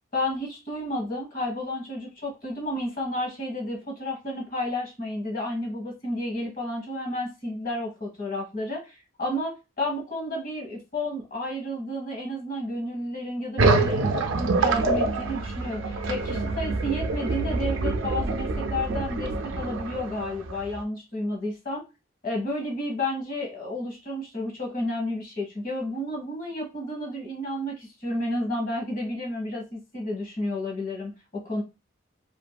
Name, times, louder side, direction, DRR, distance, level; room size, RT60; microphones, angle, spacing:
voice 1, 0.1-21.8 22.2-31.6, left 1 dB, 45° left, 0 dB, 1.1 m, -31 dB
sound 1, 13.6-20.8, right 3 dB, 80° right, 0.4 m, -26 dB
2.6 x 2.5 x 2.2 m, 0.27 s
head